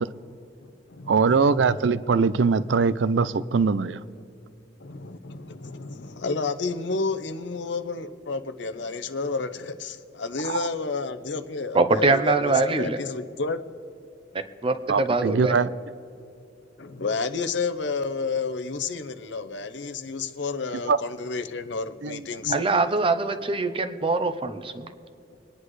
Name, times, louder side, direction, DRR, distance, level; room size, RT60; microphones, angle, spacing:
voice 1, 1.1-4.0 10.4-10.7 14.9-15.7 20.9-21.0 22.0-22.6, right 5 dB, 75° right, 0.5 m, -22 dB
voice 2, 4.8-13.6 16.8-22.8, left 4 dB, 75° left, 0.8 m, -31 dB
voice 3, 11.7-13.0 14.6-15.5 22.5-24.9, right 3 dB, 30° right, 0.7 m, -23 dB
24.0 x 9.9 x 3.2 m
head